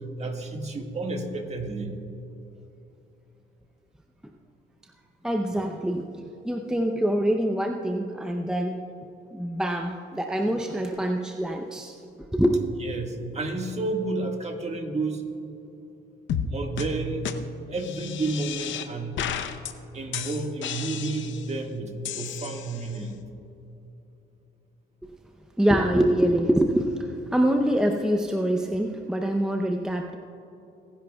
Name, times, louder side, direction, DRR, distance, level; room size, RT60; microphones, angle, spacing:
voice 1, 0.2-2.0 12.8-15.2 16.5-17.3 17.7-19.3 19.9-23.2, right 2 dB, 35° right, 3 dB, 1.6 m, -31 dB
voice 2, 5.2-8.8 9.3-11.9 12.3-12.6 25.6-30.2, right 1 dB, 5° right, 3 dB, 0.6 m, -25 dB
sound 1, 16.3-16.5 16.8-16.9 17.2-17.3 17.8-18.9 19.2-19.7 20.1-21.5 22.1-23.0, left 8 dB, 75° left, 0.8 m, -33 dB
23.5 x 10.5 x 2.3 m, 2.8 s
cardioid pair, 90°, 20 cm